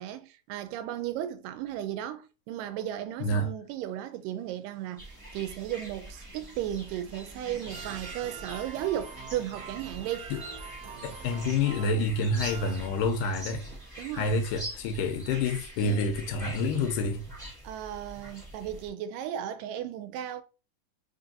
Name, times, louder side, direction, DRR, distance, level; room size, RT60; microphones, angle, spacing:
voice 1, 0.0-5.1 5.3-10.3 14.0-14.4 15.8-16.1 17.6-20.4, right 11 dB, 85° right, 2.2 m, -35 dB
sound 1, 4.5-13.4, right 6 dB, 70° right, 1.5 m, -46 dB
sound 2, 5.0-18.9, right 1 dB, 5° left, 0.7 m, -44 dB
voice 2, 11.0-13.6 14.1-17.2, left 3 dB, 90° left, 2.3 m, -28 dB
5.2 x 2.5 x 2.7 m
omnidirectional pair, 3.8 m